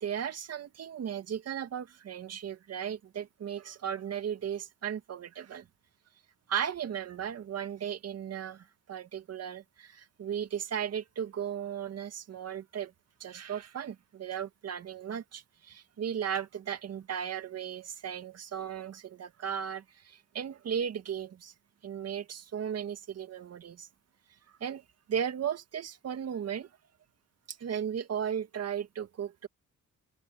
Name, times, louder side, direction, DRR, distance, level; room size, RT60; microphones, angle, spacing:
voice 1, 0.0-5.7 6.5-12.9 13.2-21.5 21.8-23.9 24.6-26.7 27.5-29.5, right 8 dB, 55° right, 2.0 m, -36 dB
open air
cardioid pair, 90°, 30 cm